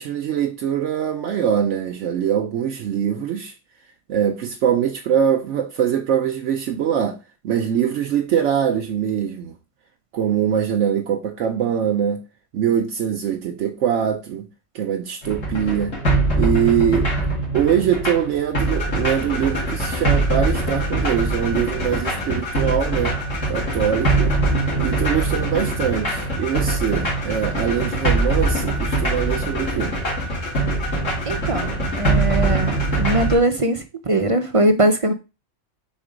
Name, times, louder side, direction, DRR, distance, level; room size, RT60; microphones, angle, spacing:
voice 1, 0.0-3.5 4.1-9.5 10.1-12.2 12.5-14.5 14.7-16.0 16.4-23.2 23.5-24.4 24.8-30.0, right 8 dB, 75° right, 1.0 m, -23 dB
sound 1, 15.2-33.3, right 2 dB, 85° left, 2.9 m, -22 dB
voice 2, 31.3-35.1, right 1 dB, 45° right, 0.4 m, -21 dB
5.3 x 3.9 x 5.0 m
omnidirectional pair, 1.3 m